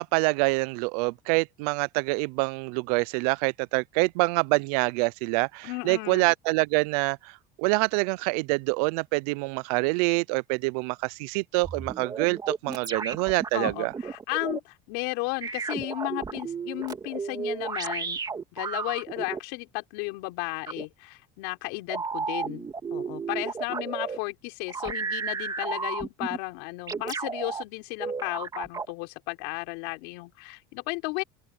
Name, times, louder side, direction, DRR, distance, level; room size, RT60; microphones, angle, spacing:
voice 1, 0.0-7.3 7.6-13.9, right 27 dB, 90° right, 0.5 m, -26 dB
voice 2, 5.6-6.3 13.5-18.2 18.5-31.2, left 27 dB, 80° left, 4.9 m, -34 dB
sound 1, 11.6-14.6 15.4-19.4 20.7-20.8 21.9-24.2 24.7-26.4 26.9-27.6 28.0-28.9, right 5 dB, 20° right, 2.4 m, -33 dB
open air
cardioid pair, 140°, 19 cm